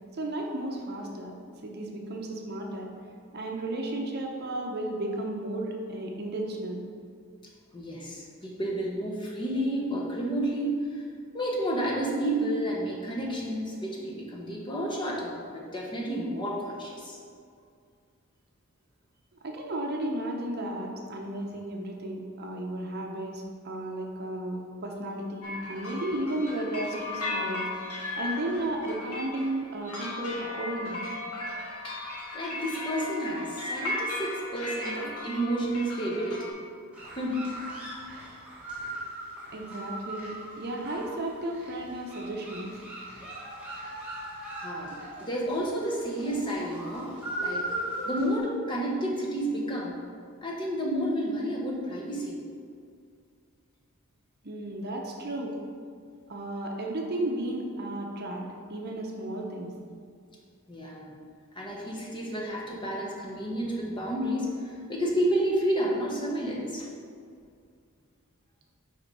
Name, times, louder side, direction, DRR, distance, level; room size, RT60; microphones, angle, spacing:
voice 1, 0.1-1.3 1.6-2.9 3.3-6.8 19.4-31.1 39.5-42.7 54.4-55.6 56.3-59.7, right 1 dB, 45° right, 1 dB, 0.7 m, -34 dB
voice 2, 7.7-11.0 11.3-17.2 26.1-26.2 31.8-31.9 32.3-36.5 37.1-37.7 44.6-47.6 48.0-49.9 50.4-52.4 60.7-61.2 61.5-66.9, right 1 dB, 20° left, -3 dB, 1.0 m, -31 dB
sound 1, 25.4-36.5, left 2 dB, 90° left, 1.7 m, -36 dB
sound 2, 36.9-48.4, right 1 dB, 5° right, 1.4 m, -38 dB
5.7 x 4.4 x 5.4 m, 2.2 s
head